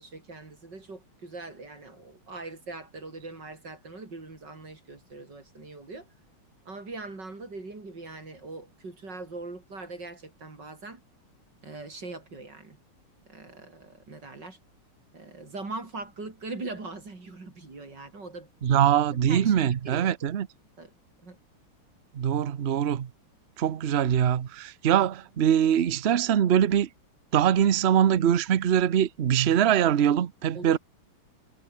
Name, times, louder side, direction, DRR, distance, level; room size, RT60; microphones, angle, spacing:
voice 1, 0.0-6.1 6.6-11.0 11.6-12.8 13.3-14.6 15.1-18.5 18.8-18.9 19.2-20.1 20.8-20.9 21.2-21.4 30.5-30.8, right 3 dB, 50° right, 5.0 m, -41 dB
voice 2, 18.6-20.5 22.1-23.1 23.6-26.9 27.3-30.8, right 9 dB, 65° right, 0.6 m, -23 dB
omnidirectional pair, 2.4 m